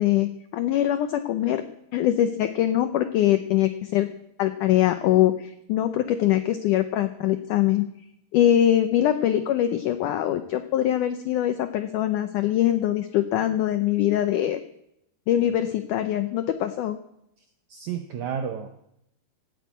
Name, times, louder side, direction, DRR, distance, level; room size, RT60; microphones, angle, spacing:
voice 1, 0.0-1.6 1.9-4.1 4.4-7.9 8.3-14.6 15.3-17.0, left 12 dB, 80° left, 9 dB, 1.8 m, -23 dB
voice 2, 17.7-18.8, right 8 dB, 80° right, 7 dB, 1.6 m, -32 dB
18.0 x 9.2 x 8.3 m, 0.80 s
omnidirectional pair, 4.5 m